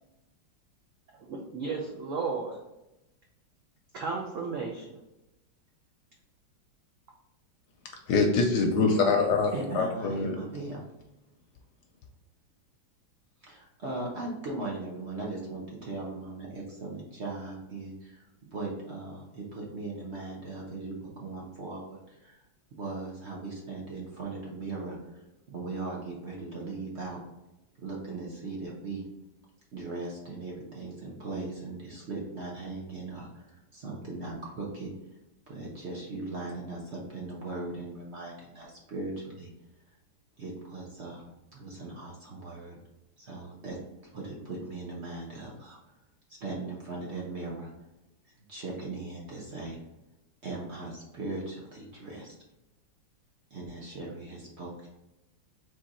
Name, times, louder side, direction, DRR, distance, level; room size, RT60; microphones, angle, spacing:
voice 1, 1.2-2.6 3.9-5.0, right 4 dB, 80° right, 0 dB, 0.7 m, -34 dB
voice 2, 8.1-10.4, left 4 dB, 70° left, 3 dB, 1.0 m, -24 dB
voice 3, 9.5-10.8 13.4-22.4 22.7-27.2 27.8-29.1 29.7-34.9 35.5-39.5 40.4-42.8 43.2-43.8 44.1-45.8 46.4-47.7 48.5-49.8 50.4-52.3 53.5-54.9, right 3 dB, 45° right, -3 dB, 0.9 m, -39 dB
3.8 x 3.3 x 4.1 m, 0.96 s
omnidirectional pair, 2.1 m